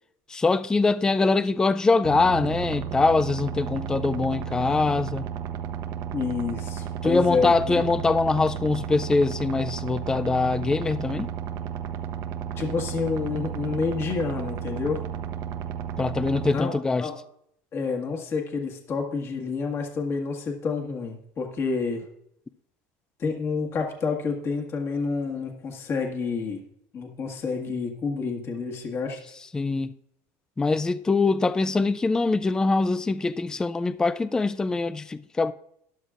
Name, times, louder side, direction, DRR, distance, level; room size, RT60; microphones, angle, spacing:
voice 1, 0.3-5.2 7.0-11.3 16.0-17.1 29.5-29.9 30.6-35.5, left 3 dB, 10° left, 0.3 m, -23 dB
sound 1, 2.0-16.5, right 9 dB, 55° right, 1.0 m, -33 dB
voice 2, 6.1-7.8 12.6-15.0 16.4-16.7 17.0-17.2 17.7-22.0 23.2-26.6 26.9-29.2, left 4 dB, 30° left, 1.7 m, -29 dB
13.0 x 11.5 x 2.5 m
cardioid pair, 150°, 8 cm